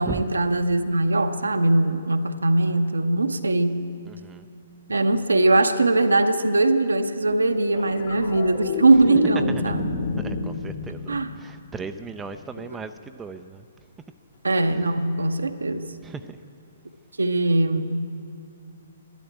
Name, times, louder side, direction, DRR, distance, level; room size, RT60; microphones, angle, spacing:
voice 1, 0.0-3.8 4.9-9.9 11.1-11.4 12.6-12.7 14.4-15.9 17.2-18.1, right 2 dB, 75° right, 8 dB, 0.9 m, -21 dB
voice 2, 4.1-4.5 9.5-9.7 10.2-13.6 16.0-16.4, right 4 dB, 10° right, 8 dB, 0.5 m, -37 dB
sound 1, 7.7-12.2 14.6-14.8, left 4 dB, 55° left, 2.1 m, -30 dB
12.5 x 12.5 x 8.8 m, 2.5 s
figure-of-eight pair, 125°, 0 cm